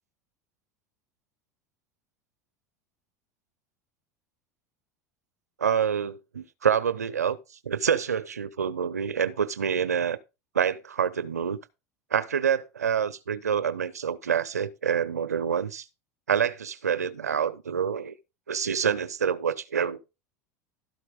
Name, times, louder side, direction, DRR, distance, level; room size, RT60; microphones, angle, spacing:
voice 1, 5.6-7.4 7.6-10.2 10.5-11.6 12.1-15.8 16.3-18.1 18.5-20.0, right 7 dB, 90° right, 0.7 m, -27 dB
12.5 x 4.5 x 5.1 m
hypercardioid pair, 85°, 8 cm